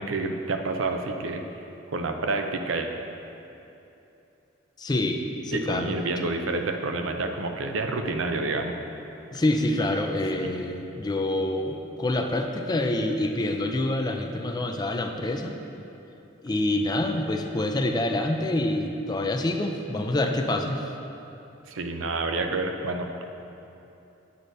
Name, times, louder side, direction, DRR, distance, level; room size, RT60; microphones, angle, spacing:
voice 1, 0.0-1.4 1.9-2.9 5.5-8.8 10.4-10.6 21.7-23.1, right 3 dB, 90° right, 5 dB, 0.6 m, -28 dB
voice 2, 4.8-5.9 9.3-15.6 16.4-20.8, left 1 dB, 20° left, 4 dB, 0.4 m, -26 dB
8.3 x 7.6 x 2.7 m, 2.9 s
head